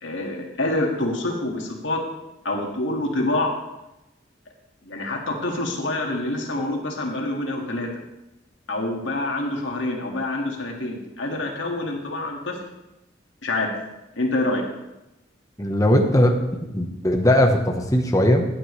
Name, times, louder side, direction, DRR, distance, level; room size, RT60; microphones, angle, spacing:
voice 1, 0.0-2.0 2.4-3.5 4.8-7.9 8.7-12.6 13.4-13.7 14.2-14.6, left 2 dB, 90° left, 0 dB, 2.3 m, -26 dB
voice 2, 15.6-18.5, left 1 dB, 20° left, 3 dB, 1.2 m, -19 dB
15.0 x 9.0 x 3.4 m, 0.96 s
head